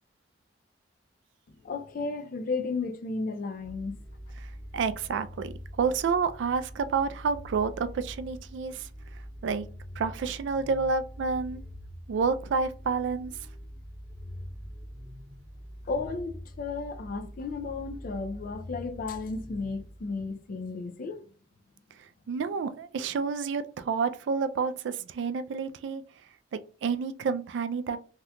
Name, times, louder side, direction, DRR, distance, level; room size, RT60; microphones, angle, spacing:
voice 1, 1.5-4.0 15.9-21.2, left 4 dB, 50° left, 0.4 m, -34 dB
sound 1, 3.6-20.4, equal, 5° left, 0.6 m, -44 dB
voice 2, 4.4-8.9 9.4-9.7 10.0-11.6 12.1-13.3 22.3-26.0 26.5-28.0, right 5 dB, 75° right, 0.3 m, -29 dB
3.6 x 2.7 x 2.2 m
head